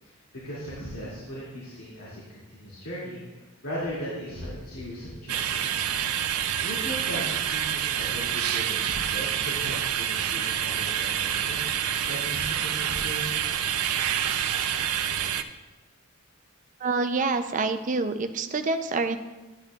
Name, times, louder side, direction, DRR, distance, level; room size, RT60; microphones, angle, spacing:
voice 1, 0.4-2.2 2.5-5.9 6.6-13.4, equal, 75° left, -9 dB, 2.4 m, -37 dB
sound 1, 5.3-15.4, right 9 dB, 90° right, 0.5 m, -27 dB
voice 2, 16.8-19.2, right 3 dB, 35° right, 7 dB, 0.4 m, -27 dB
10.5 x 8.7 x 2.4 m, 1.2 s
head